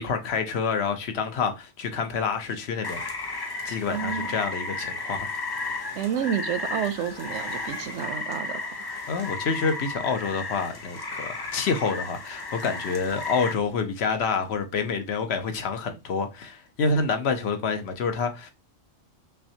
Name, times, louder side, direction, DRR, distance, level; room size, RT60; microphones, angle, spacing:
voice 1, 0.0-3.0 3.6-5.3 9.1-18.5, left 5 dB, 70° left, 1.0 m, -28 dB
Rain, 2.8-13.5, left 3 dB, 30° left, 0.4 m, -34 dB
voice 2, 3.9-4.4 5.9-8.7, right 9 dB, 90° right, 0.9 m, -30 dB
5.7 x 2.2 x 2.7 m
omnidirectional pair, 1.2 m